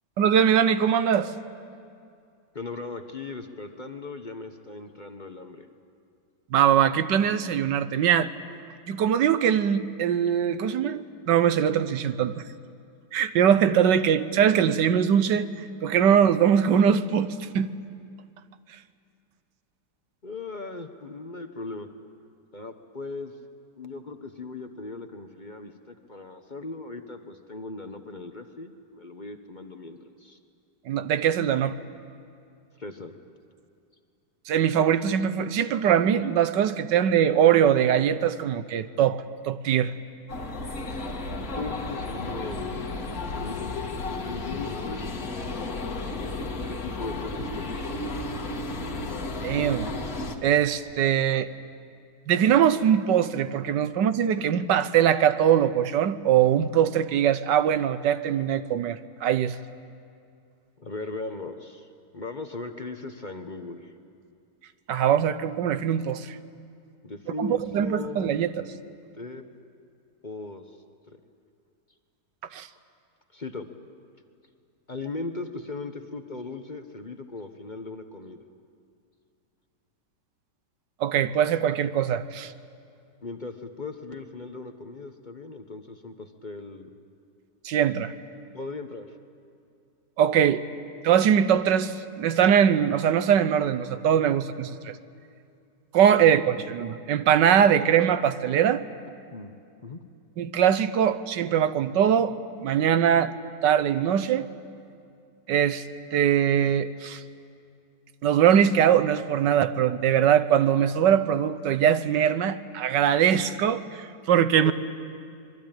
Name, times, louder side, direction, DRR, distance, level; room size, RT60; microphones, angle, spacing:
voice 1, 0.2-1.3 6.5-8.3 8.9-12.3 13.1-15.5 15.8-17.7 30.9-31.8 34.5-39.9 49.4-49.9 50.4-51.5 52.3-59.6 64.9-66.4 67.4-68.7 72.5-72.7 81.0-82.5 87.6-88.1 90.2-90.6 91.0-94.9 95.9-98.8 100.4-102.3 102.6-103.3 103.6-104.5 105.5-105.8 106.1-107.2 108.2-114.7, right 9 dB, 90° right, 12 dB, 1.6 m, -22 dB
voice 2, 2.5-5.7 20.2-21.9 22.5-23.3 23.8-30.4 32.8-33.1 41.6-42.7 43.3-43.8 44.1-45.3 46.7-48.4 60.8-61.9 62.1-63.9 67.0-68.6 69.2-69.4 70.2-70.6 71.1-71.2 73.3-73.7 74.9-78.4 83.2-86.9 88.5-89.1 99.3-99.5 99.8-100.0 114.6-114.7, left 3 dB, 30° left, 6 dB, 1.1 m, -38 dB
sound 1, 40.3-50.4, left 2 dB, 55° left, 2.2 m, -33 dB
25.5 x 22.5 x 9.0 m, 2.4 s
omnidirectional pair, 1.8 m